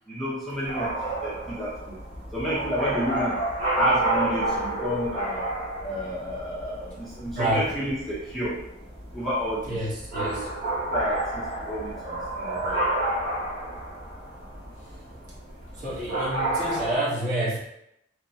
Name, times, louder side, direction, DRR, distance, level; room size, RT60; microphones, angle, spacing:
voice 1, 0.1-0.9 1.2-2.0 2.3-3.4 3.8-5.5 5.8-8.6 9.1-9.8 10.2-10.4 10.9-12.8, equal, ahead, -9 dB, 0.6 m, -30 dB
sound 1, 0.7-17.0, right 1 dB, 70° right, 1.4 m, -31 dB
voice 2, 7.4-7.8 9.6-10.5 15.7-17.6, right 1 dB, 45° right, -8 dB, 0.9 m, -28 dB
3.1 x 2.0 x 2.7 m, 0.82 s
head